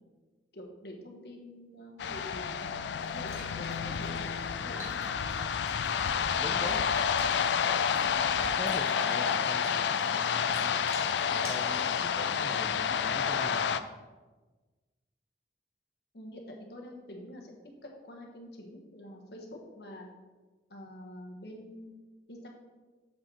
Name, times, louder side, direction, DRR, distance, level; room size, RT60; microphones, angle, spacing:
voice 1, 0.5-2.6 3.1-5.0 16.1-17.6 17.8-20.1 20.7-21.9 22.3-22.5, equal, 70° left, 1 dB, 1.3 m, -46 dB
sound 1, 2.0-13.8, left 7 dB, 85° left, 0.4 m, -29 dB
sound 2, 3.0-11.7, equal, 15° right, 2.0 m, -51 dB
voice 2, 6.3-6.9 8.5-10.8 11.2-13.8, equal, 5° left, 2 dB, 0.4 m, -42 dB
7.1 x 5.5 x 4.3 m, 1.3 s
head